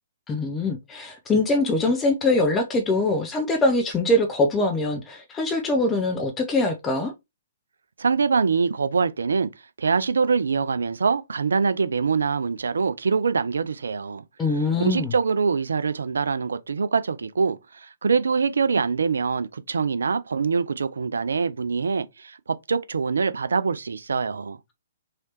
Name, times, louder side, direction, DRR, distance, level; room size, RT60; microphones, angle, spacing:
voice 1, 0.3-7.1 14.4-15.1, left 2 dB, 15° left, 0.5 m, -23 dB
voice 2, 8.0-9.5 9.8-24.6, right 5 dB, 70° right, 0.3 m, -24 dB
3.2 x 2.7 x 3.0 m
figure-of-eight pair, 125°, 0 cm